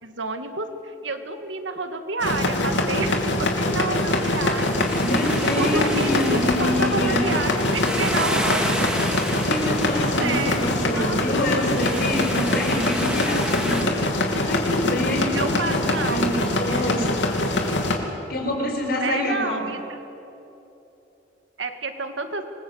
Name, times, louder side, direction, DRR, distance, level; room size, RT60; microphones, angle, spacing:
voice 1, 0.0-4.9 5.2-8.8 9.8-11.2 15.3-16.3 16.7-16.9 19.0-20.0 21.6-22.4, right 3 dB, 85° right, 7 dB, 2.2 m, -30 dB
sound 1, 2.2-18.0, left 2 dB, 75° left, 3.1 m, -23 dB
sound 2, 4.1-13.8, right 1 dB, 5° right, 2.2 m, -32 dB
voice 2, 5.0-7.3 9.5-14.1 14.5-17.1 18.3-19.7, left 1 dB, 55° left, 1 dB, 5.3 m, -26 dB
26.5 x 21.0 x 8.1 m, 3.0 s
head